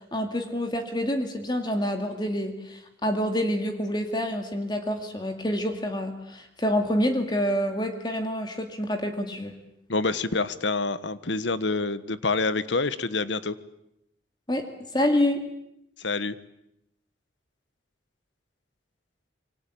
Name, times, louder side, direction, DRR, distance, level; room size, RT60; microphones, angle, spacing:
voice 1, 0.1-9.6 14.5-14.7 14.9-15.4, equal, 25° left, 5 dB, 2.3 m, -27 dB
voice 2, 9.9-13.5 16.0-16.3, left 3 dB, 85° left, 14 dB, 1.4 m, -27 dB
26.5 x 24.5 x 8.8 m, 0.80 s
head